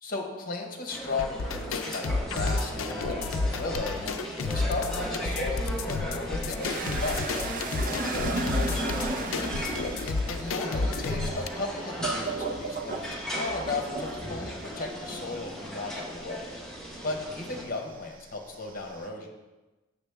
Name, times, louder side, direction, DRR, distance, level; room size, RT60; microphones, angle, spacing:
voice 1, 0.0-4.1 4.4-9.5 10.0-16.5 17.0-19.3, left 3 dB, 45° left, 2 dB, 1.1 m, -36 dB
sound 1, 0.9-17.6, equal, 5° left, 1.0 m, -37 dB
sound 2, 1.2-11.5, left 3 dB, 70° left, 0.5 m, -31 dB
sound 3, 6.6-17.5 17.9-19.0, right 3 dB, 40° right, 0.6 m, -36 dB
7.0 x 6.5 x 3.4 m, 1.1 s
head